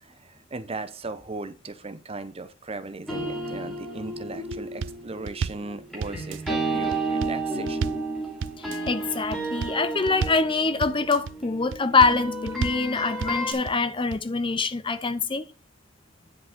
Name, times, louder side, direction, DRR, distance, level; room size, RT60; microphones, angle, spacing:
voice 1, 0.0-7.9, right 3 dB, 30° right, 0.8 m, -37 dB
sound 1, 3.1-13.5, right 2 dB, ahead, 2.9 m, -32 dB
sound 2, 4.5-5.0 5.3-5.7 6.0-6.5 6.9-7.4 7.7-8.1 8.4-8.9 9.3-9.8 10.1-10.5 10.8-11.3 11.7-12.2 12.5-12.9 13.2-13.7 14.1-14.2, right 6 dB, 60° right, 0.3 m, -32 dB
voice 2, 8.6-15.4, left 4 dB, 25° left, 0.6 m, -24 dB
10.0 x 5.2 x 5.1 m
head